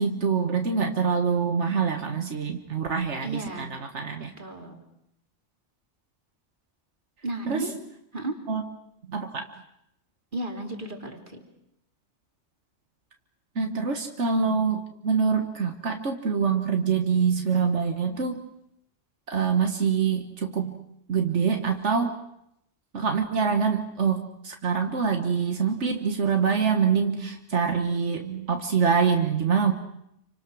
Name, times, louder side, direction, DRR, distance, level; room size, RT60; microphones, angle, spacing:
voice 1, 0.0-3.7 3.9-4.3 7.5-7.6 8.5-8.6 9.1-9.5 13.6-18.4 19.3-22.2 22.9-29.7, right 6 dB, 85° right, 5 dB, 1.8 m, -25 dB
voice 2, 3.1-3.8 4.4-4.8 7.2-7.8 8.1-8.4 10.3-11.4, right 2 dB, 45° right, 3 dB, 3.3 m, -34 dB
28.5 x 25.0 x 6.3 m, 0.79 s
omnidirectional pair, 1.2 m